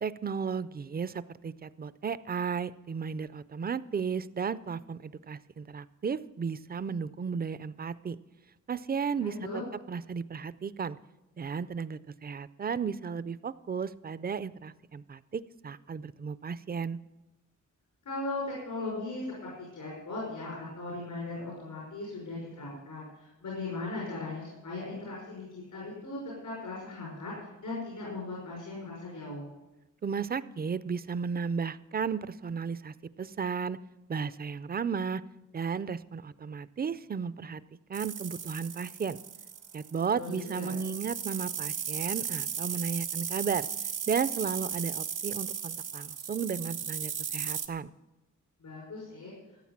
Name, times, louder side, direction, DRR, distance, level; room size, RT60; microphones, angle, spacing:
voice 1, 0.0-8.2 8.7-9.6 9.9-11.0 11.4-17.0 30.0-33.8 34.1-35.2 35.5-37.6 37.9-39.2 39.7-43.7 44.1-47.9, right 6 dB, 30° right, 17 dB, 0.4 m, -34 dB
voice 2, 9.2-9.6 18.1-29.5 40.1-40.7 48.6-49.3, left 2 dB, 85° left, -4 dB, 5.5 m, -38 dB
sound 1, 37.9-47.7, right 7 dB, 80° right, 1.2 m, -36 dB
14.5 x 9.0 x 7.3 m, 1.0 s
wide cardioid pair, 165°, 31 cm